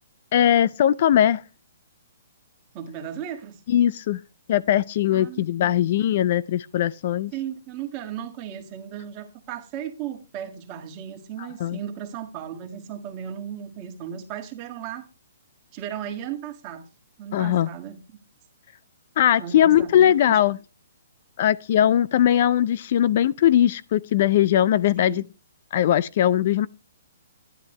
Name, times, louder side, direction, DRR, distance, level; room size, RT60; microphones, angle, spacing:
voice 1, 0.3-1.4 3.7-4.2 4.5-7.3 11.6-11.8 17.3-17.7 19.2-20.6 21.4-25.2 25.7-26.7, left 11 dB, 50° left, 0.4 m, -20 dB
voice 2, 2.7-3.6 5.1-5.7 7.3-15.1 15.7-16.9 17.2-18.0 19.4-20.4 25.0-25.2, right 9 dB, 30° right, 1.9 m, -36 dB
10.5 x 10.5 x 3.2 m
hypercardioid pair, 150°, 0 cm